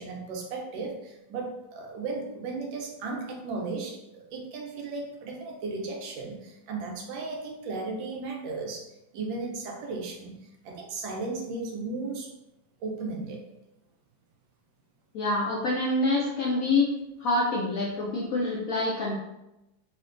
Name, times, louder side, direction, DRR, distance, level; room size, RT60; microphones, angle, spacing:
voice 1, 0.0-8.9 9.1-12.3 12.8-13.4, right 3 dB, 80° right, 1 dB, 1.3 m, -35 dB
voice 2, 15.1-16.9 17.2-19.2, left 2 dB, 85° left, -4 dB, 0.7 m, -26 dB
3.8 x 2.1 x 2.4 m, 0.90 s
omnidirectional pair, 2.1 m